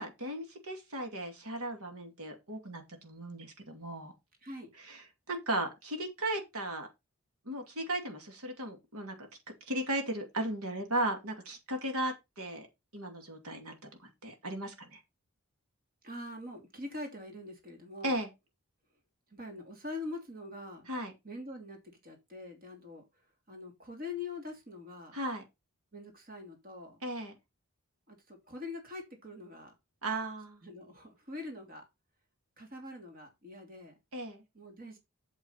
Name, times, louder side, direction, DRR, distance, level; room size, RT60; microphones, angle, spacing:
voice 1, 0.0-4.1 4.9-5.0 5.3-6.9 7.5-9.3 9.7-12.7 12.9-15.0 18.0-18.3 20.9-21.1 25.1-25.4 27.0-27.3 30.0-30.6 34.1-34.4, right 1 dB, 90° right, 2.6 m, -36 dB
voice 2, 16.0-18.2 19.3-20.9 21.2-23.0 23.5-25.2 25.9-27.0 28.1-29.7 30.6-31.8 32.6-33.9 34.5-35.0, left 2 dB, 40° right, 2.8 m, -44 dB
7.9 x 7.2 x 4.2 m
head